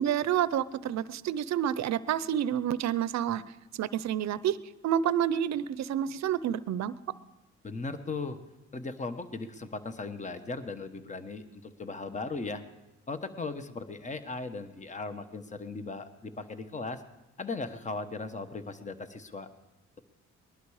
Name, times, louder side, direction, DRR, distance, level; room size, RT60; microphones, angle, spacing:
voice 1, 0.0-3.4 3.7-4.6 4.8-6.9, right 10 dB, 65° right, 16 dB, 0.7 m, -29 dB
voice 2, 7.6-8.4 8.7-12.6 13.1-17.0 17.4-19.5, left 3 dB, 25° left, 10 dB, 1.1 m, -37 dB
19.5 x 11.5 x 4.9 m, 1.0 s
cardioid pair, 90°, 30 cm